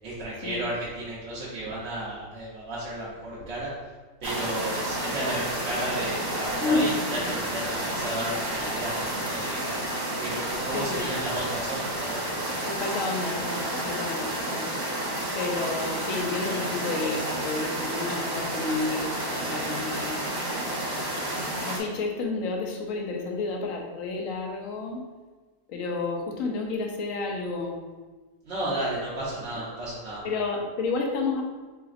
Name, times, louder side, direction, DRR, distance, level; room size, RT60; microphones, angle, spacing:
voice 1, 0.0-3.7 4.2-9.6 10.2-12.2 28.4-30.3, right 1 dB, 65° right, -8 dB, 1.1 m, -33 dB
sound 1, 4.2-21.8, right 1 dB, 30° right, 0.5 m, -30 dB
voice 2, 6.6-7.1 10.7-11.1 12.6-14.7 15.3-20.2 20.5-20.8 21.6-25.0 25.7-27.8 30.2-31.4, left 3 dB, 85° left, 2 dB, 1.0 m, -30 dB
3.9 x 3.3 x 2.4 m, 1.3 s
omnidirectional pair, 1.4 m